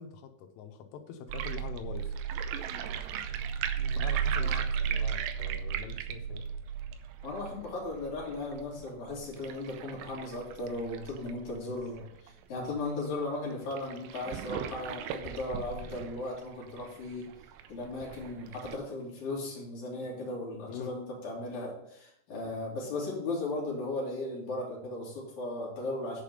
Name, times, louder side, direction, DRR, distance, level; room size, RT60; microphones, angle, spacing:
voice 1, 0.0-2.1 4.0-6.4 20.7-21.0, left 7 dB, 90° left, 6 dB, 3.6 m, -44 dB
sound 1, 1.3-12.3 12.7-12.8 13.0-13.1 13.7-18.8, right 8 dB, 85° right, 2.5 m, -35 dB
voice 2, 7.2-17.3 17.7-26.2, left 2 dB, 40° left, -4 dB, 3.8 m, -37 dB
10.5 x 5.1 x 5.5 m, 0.75 s
omnidirectional pair, 5.5 m